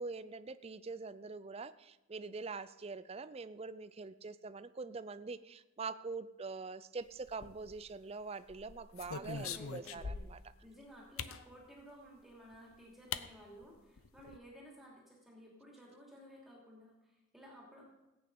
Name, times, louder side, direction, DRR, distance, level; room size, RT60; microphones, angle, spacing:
voice 1, 0.0-10.4, right 4 dB, 30° right, 13 dB, 0.4 m, -44 dB
sound 1, 7.3-8.0 8.5-10.5 11.2-11.4 12.5-12.6 13.1-13.3 13.6-13.7 14.0-14.4, left 6 dB, 85° left, 0.7 m, -43 dB
voice 2, 9.1-10.3 10.6-17.9, equal, ahead, -3 dB, 2.8 m, -55 dB
17.0 x 8.9 x 5.4 m, 1.0 s
head